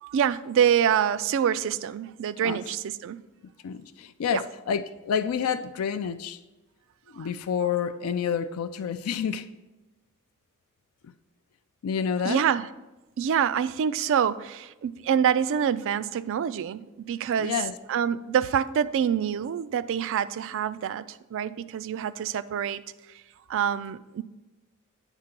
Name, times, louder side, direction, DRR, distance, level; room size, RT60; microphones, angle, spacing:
voice 1, 0.0-3.2 4.3-4.4 7.2-7.3 12.2-12.7 13.2-17.5 17.9-22.8 23.5-24.2, right 8 dB, 60° right, 0.3 m, -26 dB
voice 2, 3.6-6.4 7.1-9.5 11.0-11.1 11.8-12.4 17.4-17.8, left 7 dB, 75° left, 0.4 m, -29 dB
9.0 x 3.8 x 5.8 m
head